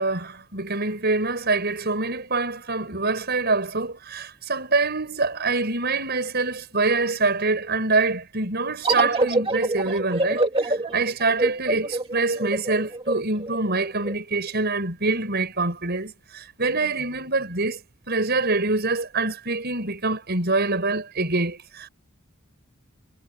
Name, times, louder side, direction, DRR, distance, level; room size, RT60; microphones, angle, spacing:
voice 1, 0.0-17.8 18.1-21.9, right 3 dB, 50° right, 7.1 m, -25 dB
sound 1, 8.8-14.1, right 2 dB, 25° right, 2.3 m, -25 dB
head